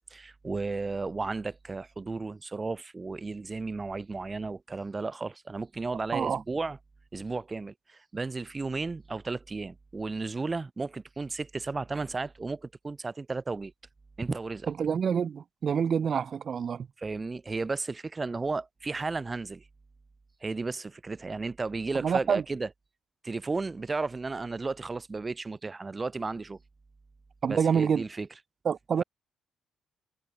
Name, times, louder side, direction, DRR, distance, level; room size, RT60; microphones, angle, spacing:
voice 1, 0.1-6.8 7.1-13.7 14.2-14.7 17.0-19.6 20.4-22.7 23.2-26.6 27.5-28.3, right 3 dB, 25° right, 1.1 m, -34 dB
voice 2, 14.7-16.9 22.0-22.4 27.4-28.0 28.6-29.0, right 7 dB, 50° right, 0.3 m, -27 dB
cardioid pair, 90°, 0 cm